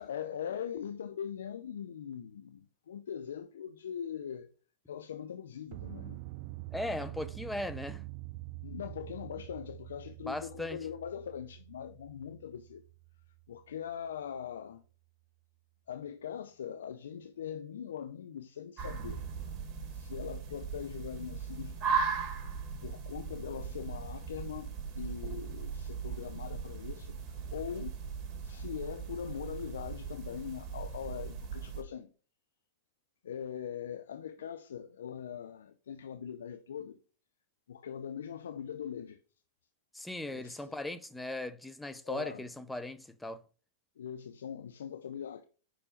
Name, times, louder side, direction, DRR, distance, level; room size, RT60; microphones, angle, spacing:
voice 1, 0.0-4.5 4.9-6.2 8.6-12.8 13.5-14.8 15.9-19.3 19.9-22.2 22.8-27.9 28.4-32.1 33.2-37.0 37.7-39.2 40.3-40.7 42.0-42.4 44.0-45.4, left 8 dB, 85° left, 0.5 m, -41 dB
sound 1, 5.7-14.1 19.0-19.7, right 17 dB, 55° right, 0.4 m, -46 dB
voice 2, 6.7-8.0 10.3-10.8 39.9-43.4, left 1 dB, 5° left, 0.6 m, -38 dB
sound 2, 18.8-31.8, right 6 dB, 30° right, 2.1 m, -38 dB
4.9 x 4.9 x 5.1 m
hypercardioid pair, 115°, 0 cm